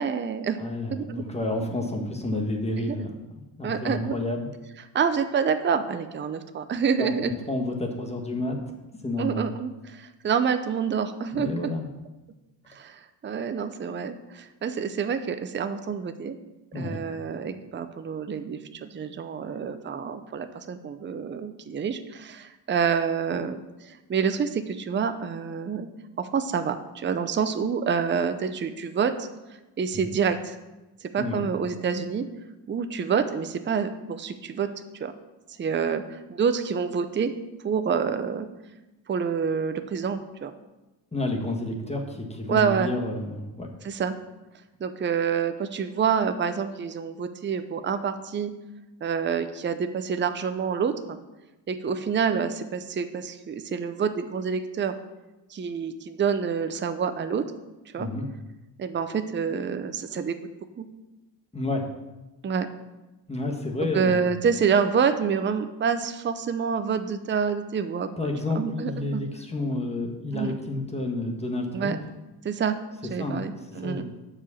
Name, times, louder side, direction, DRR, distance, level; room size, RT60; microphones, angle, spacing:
voice 1, 0.0-0.6 0.9-1.2 2.8-3.0 3.6-4.2 4.9-7.3 9.2-11.7 12.7-16.4 16.7-25.9 26.2-29.3 29.8-30.6 31.0-32.3 32.7-34.7 35.0-35.1 35.6-37.3 37.6-38.5 39.1-40.5 42.5-42.9 43.8-44.1 44.8-48.5 49.0-51.2 51.7-54.9 55.5-57.4 57.9-58.1 58.8-60.5 60.8-60.9 62.4-62.7 63.8-68.1 68.5-69.2 70.3-70.6 71.7-72.0 72.4-72.7 73.1-74.0, right 6 dB, 25° right, 9 dB, 0.5 m, -27 dB
voice 2, 0.6-4.5 7.0-8.6 9.0-9.5 11.3-11.9 16.7-17.0 29.9-30.1 31.2-31.4 41.1-43.7 58.0-58.3 61.5-61.9 63.3-64.3 68.2-71.9 73.2-73.4 73.8-74.0, left 2 dB, 15° left, 2 dB, 1.3 m, -30 dB
7.4 x 5.0 x 7.0 m, 1.0 s
cardioid pair, 110°, 46 cm